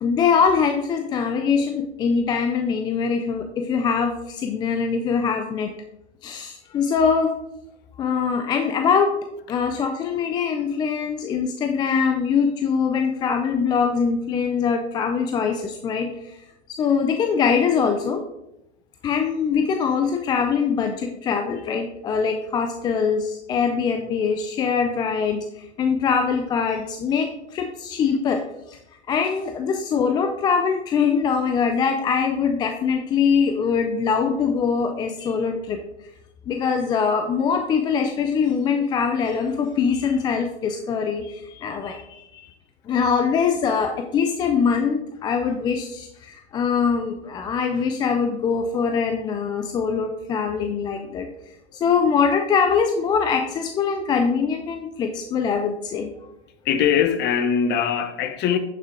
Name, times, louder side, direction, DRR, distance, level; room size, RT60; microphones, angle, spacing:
voice 1, 0.0-5.7 6.2-7.3 8.0-9.2 9.5-16.4 16.7-18.2 19.0-28.8 29.1-35.8 36.5-42.5 42.9-51.3 51.7-56.1, left 6 dB, 15° left, 0.3 m, -23 dB
voice 2, 56.6-58.6, left 8 dB, 30° left, 0.9 m, -21 dB
9.2 x 6.6 x 3.7 m
hypercardioid pair, 120°, 33 cm